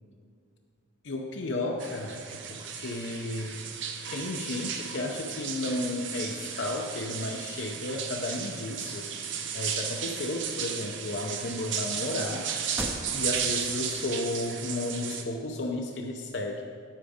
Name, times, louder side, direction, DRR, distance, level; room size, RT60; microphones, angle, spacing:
voice 1, 1.0-3.6 4.1-9.1 9.5-12.5 13.1-16.6, left 2 dB, 55° left, 1 dB, 0.7 m, -33 dB
sound 1, 1.8-15.2, right 7 dB, 60° right, 0.8 m, -35 dB
sound 2, 12.7-13.6 14.0-14.1 14.7-15.6, equal, 10° right, 0.7 m, -39 dB
10.0 x 8.1 x 5.0 m, 2.3 s
head